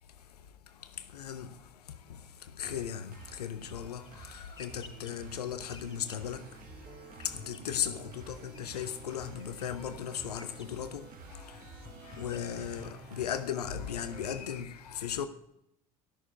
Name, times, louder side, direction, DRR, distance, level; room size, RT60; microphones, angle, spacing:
voice 1, 0.8-1.6 2.1-6.5 6.8-15.3, left 9 dB, 80° left, 0.7 m, -37 dB
sound 1, 2.6-14.6, right 6 dB, 45° right, 1.1 m, -51 dB
sound 2, 3.0-13.4, left 4 dB, 25° left, 4.7 m, -56 dB
sound 3, 5.9-13.0, right 1 dB, 25° right, 4.2 m, -58 dB
12.5 x 6.7 x 8.7 m
figure-of-eight pair, 65°, 20 cm